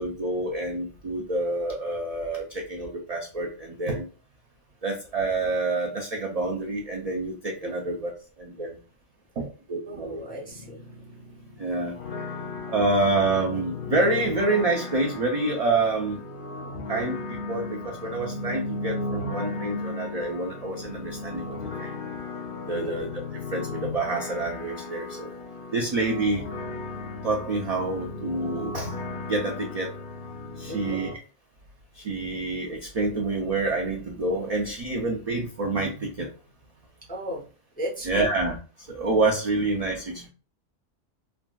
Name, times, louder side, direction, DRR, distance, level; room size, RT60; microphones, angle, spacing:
voice 1, 0.0-4.1 4.8-8.1 8.4-8.8 9.4-10.2 11.6-11.9 12.7-16.2 16.9-21.9 22.7-23.2 23.5-25.3 25.7-26.4 27.2-28.9 29.3-29.9 30.6-31.1 32.0-36.3 38.1-38.6 38.9-40.3, right 2 dB, 60° right, 0 dB, 0.4 m, -27 dB
voice 2, 9.9-11.6 22.7-23.0 30.7-31.0 37.1-37.4 37.8-38.3, equal, 10° left, -2 dB, 0.5 m, -36 dB
sound 1, 11.9-31.1, left 3 dB, 60° left, 0.6 m, -35 dB
3.5 x 2.4 x 2.2 m, 0.37 s
omnidirectional pair, 1.3 m